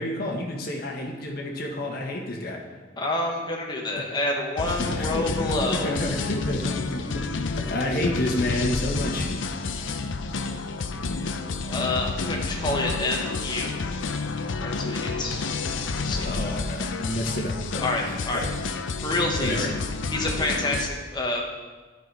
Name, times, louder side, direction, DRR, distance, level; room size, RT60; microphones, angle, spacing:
voice 1, 0.0-2.6 3.9-4.1 4.6-9.3 16.2-17.8 18.1-18.6 19.4-19.7, left 1 dB, 50° left, 0 dB, 1.4 m, -30 dB
voice 2, 3.0-5.9 11.7-13.8 14.6-15.5 16.0-16.4 17.8-18.4 19.0-19.7 20.1-21.4, left 2 dB, 20° left, -1 dB, 1.2 m, -28 dB
sound 1, 4.6-20.9, left 4 dB, 70° left, 0.6 m, -30 dB
11.0 x 5.9 x 4.7 m, 1.3 s
head